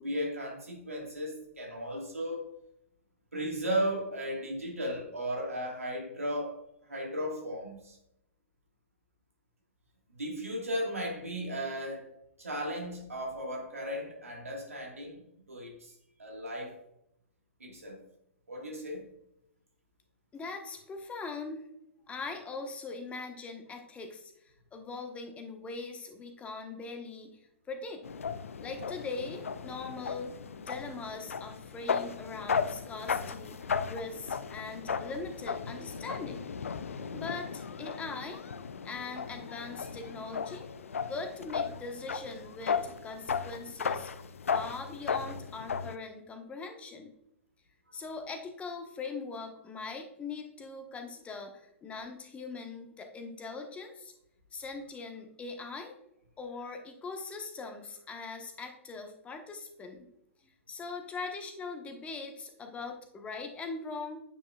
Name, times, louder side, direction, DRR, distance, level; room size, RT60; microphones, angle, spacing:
voice 1, 0.0-2.5 3.3-6.6 6.9-8.0 10.1-12.1 12.4-15.2 15.5-15.9 16.2-16.8 17.6-18.0 18.5-19.1, equal, 85° right, 1.5 m, -35 dB
voice 2, 20.3-21.7 22.1-28.0 28.6-33.6 33.9-36.5 36.9-38.4 38.8-40.7 41.1-44.1 44.5-47.1 47.9-54.1 54.5-55.9 56.4-60.0 60.4-64.2, left 4 dB, 15° left, 1.0 m, -41 dB
sound 1, 28.0-46.0, left 6 dB, 75° left, 0.4 m, -36 dB
8.9 x 4.9 x 2.3 m
figure-of-eight pair, 110°, 7 cm